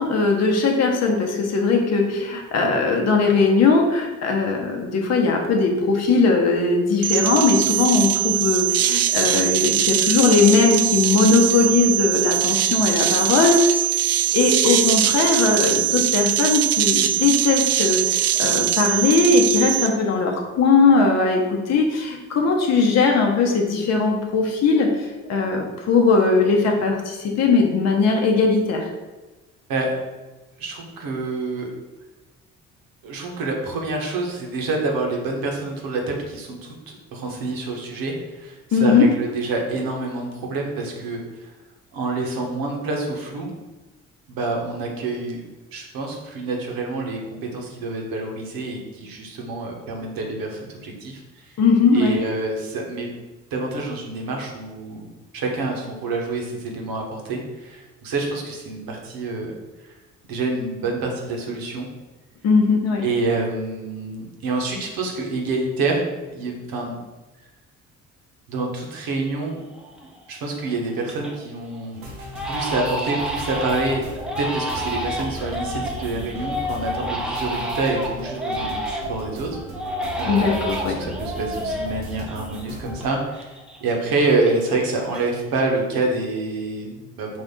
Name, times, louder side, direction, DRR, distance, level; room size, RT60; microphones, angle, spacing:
voice 1, 0.0-13.9 14.3-28.9 38.7-39.0 51.6-52.2 62.4-63.0 80.3-81.0, left 4 dB, 40° left, 1 dB, 0.8 m, -19 dB
sound 1, 7.0-19.9, right 11 dB, 40° right, 0.4 m, -21 dB
voice 2, 30.6-31.7 33.0-41.5 41.9-43.5 44.3-45.4 45.7-51.5 51.9-53.1 53.5-55.1 55.3-59.5 59.8-59.9 60.3-61.9 63.0-67.0 68.5-69.6 70.0-72.0 72.5-74.0 74.4-79.6 80.2-83.5 83.8-87.3, right 3 dB, 60° right, 0 dB, 1.1 m, -27 dB
Crying sobbing, 69.7-70.2 70.6-71.4 71.7-71.9 72.3-79.3 79.7-83.1 83.3-84.8 85.1-85.7, equal, ahead, 0.7 m, -30 dB
sound 2, 71.9-83.1, equal, 85° right, 0.8 m, -36 dB
4.4 x 2.5 x 3.7 m, 1.1 s
hypercardioid pair, 50°, 40 cm